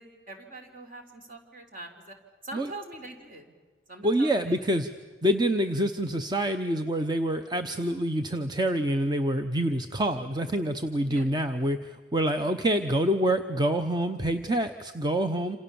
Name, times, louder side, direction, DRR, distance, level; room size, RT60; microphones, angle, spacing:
voice 1, 0.0-2.1 2.4-3.5 3.9-4.6 11.0-11.3, right 2 dB, 45° right, 5 dB, 3.8 m, -43 dB
voice 2, 4.0-4.9 5.2-15.6, right 1 dB, 20° right, 7 dB, 0.8 m, -26 dB
28.0 x 27.5 x 7.0 m, 1.4 s
head